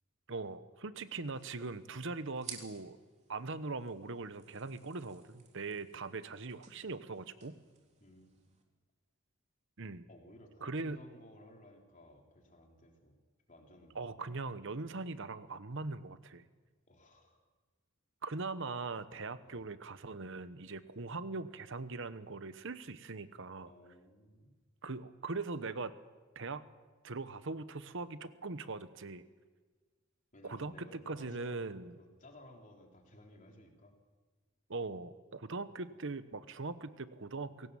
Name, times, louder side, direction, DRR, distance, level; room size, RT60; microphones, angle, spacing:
voice 1, 0.3-3.0 3.3-7.6 9.8-10.0 10.6-11.0 13.9-16.4 18.2-23.7 24.8-25.9 26.3-26.6 27.0-29.2 30.4-31.9 34.7-37.7, right 3 dB, 65° right, 13 dB, 1.1 m, -41 dB
sound 1, 1.0-8.6, right 6 dB, 35° right, 3.1 m, -55 dB
voice 2, 8.0-8.4 10.1-13.1 13.5-14.2 16.9-17.4 19.4-19.7 23.7-24.5 30.3-34.0, left 1 dB, 40° left, 1 dB, 3.5 m, -57 dB
23.5 x 17.5 x 7.1 m, 1.4 s
head